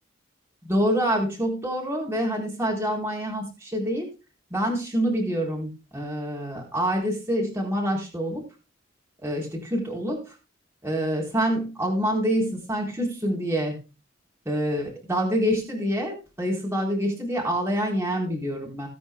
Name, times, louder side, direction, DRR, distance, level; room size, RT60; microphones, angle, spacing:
voice 1, 0.6-4.1 4.5-8.4 9.2-10.3 10.8-13.8 14.5-18.9, equal, 15° right, -2 dB, 4.1 m, -26 dB
18.5 x 9.1 x 2.2 m, 0.29 s
head